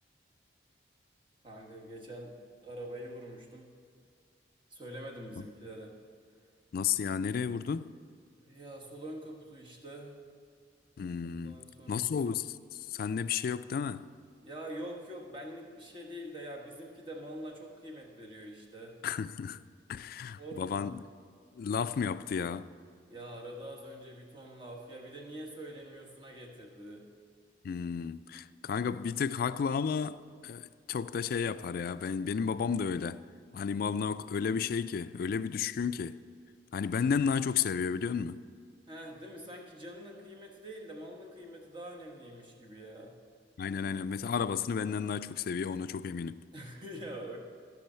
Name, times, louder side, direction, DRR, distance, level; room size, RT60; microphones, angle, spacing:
voice 1, 1.4-2.4 2.6-3.8 4.7-5.9 8.4-10.2 11.2-12.2 14.4-18.9 20.4-21.0 23.1-27.0 38.9-43.2 46.5-47.4, right 1 dB, 30° right, 1.4 m, -45 dB
voice 2, 6.7-7.9 11.0-11.6 11.9-14.1 19.0-19.6 19.9-21.0 21.5-22.7 27.6-33.2 33.5-36.2 36.7-38.4 43.6-46.4, left 6 dB, 55° left, 0.3 m, -32 dB
13.5 x 6.1 x 5.6 m
head